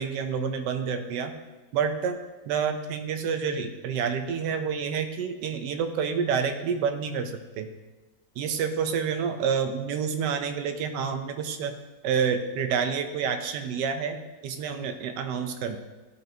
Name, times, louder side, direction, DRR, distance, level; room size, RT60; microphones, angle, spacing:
voice 1, 0.0-1.3 1.7-2.2 2.5-7.7 8.4-11.8 12.0-14.2 14.4-15.8, right 6 dB, 70° right, 7 dB, 1.1 m, -28 dB
11.0 x 5.1 x 2.7 m, 1.2 s
omnidirectional pair, 2.2 m